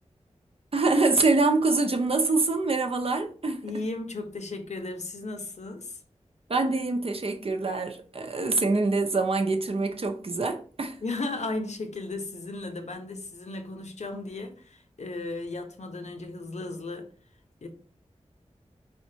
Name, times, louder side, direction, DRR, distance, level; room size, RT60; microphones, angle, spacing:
voice 1, 0.7-3.6 6.5-11.0, right 3 dB, 55° right, 0.7 m, -25 dB
voice 2, 3.6-6.0 11.0-17.1 17.6-17.7, left 2 dB, 75° left, 0.8 m, -35 dB
4.4 x 3.5 x 2.8 m
wide cardioid pair, 80°, 12 cm